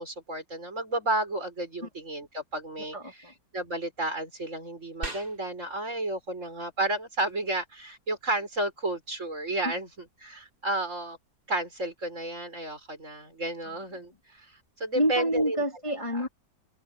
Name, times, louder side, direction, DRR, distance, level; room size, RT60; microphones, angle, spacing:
voice 1, 0.0-3.0 3.5-9.9 10.2-11.2 11.5-14.5 14.8-15.6, right 2 dB, 50° right, 6.2 m, -32 dB
voice 2, 2.9-3.3 9.6-9.7 13.6-14.1 14.9-16.3, equal, 20° left, 2.7 m, -29 dB
sound 1, 5.0-15.0, right 2 dB, 85° right, 6.1 m, -49 dB
open air
omnidirectional pair, 1.6 m